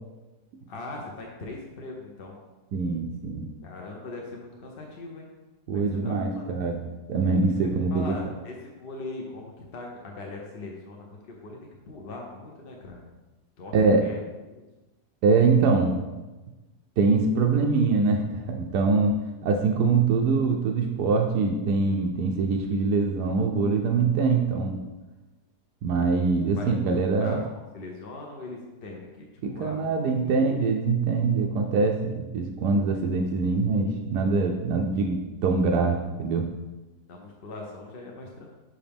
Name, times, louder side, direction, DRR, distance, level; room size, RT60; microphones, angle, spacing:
voice 1, 0.7-2.4 3.6-5.3 5.7-6.4 7.4-7.5 7.9-11.6 11.9-13.0 13.6-14.2 14.5-14.6 26.6-26.7 27.2-30.4 37.1-38.5, left 2 dB, 50° left, 0 dB, 0.7 m, -40 dB
voice 2, 2.7-3.5 5.7-8.2 13.7-14.0 15.2-16.1 17.0-19.1 19.4-24.8 25.8-27.4 29.4-36.5, right 4 dB, 80° right, 2 dB, 1.1 m, -24 dB
5.8 x 5.0 x 3.5 m, 1.1 s
omnidirectional pair, 1.7 m